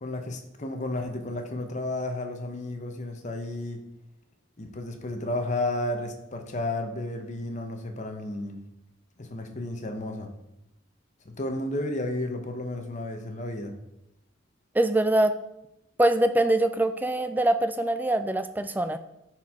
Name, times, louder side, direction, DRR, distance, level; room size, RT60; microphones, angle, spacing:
voice 1, 0.0-3.8 4.6-8.6 9.2-10.3 11.2-13.7, left 1 dB, 40° left, 5 dB, 0.8 m, -32 dB
voice 2, 14.7-15.3 16.0-19.0, right 1 dB, 10° right, 10 dB, 0.3 m, -23 dB
10.0 x 4.5 x 3.6 m, 0.87 s
head